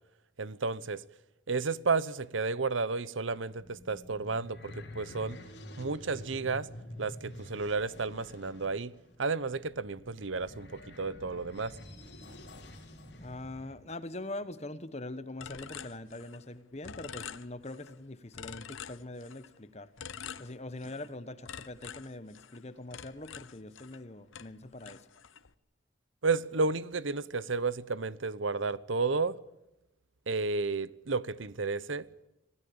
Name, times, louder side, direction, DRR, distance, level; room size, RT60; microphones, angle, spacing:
voice 1, 0.4-1.0 1.5-5.4 5.8-6.7 7.0-8.9 9.2-11.7 26.2-29.4 30.3-32.1, right 4 dB, 80° right, 0.9 m, -32 dB
sound 1, 3.3-13.7, left 1 dB, 55° left, 4.0 m, -49 dB
voice 2, 13.2-19.9 20.4-25.0, left 2 dB, 35° left, 1.2 m, -43 dB
sound 2, 15.4-16.5 16.8-18.0 18.3-19.5 20.0-21.1 21.5-24.1 24.3-25.5, left 7 dB, 90° left, 1.0 m, -46 dB
26.5 x 17.0 x 8.7 m
head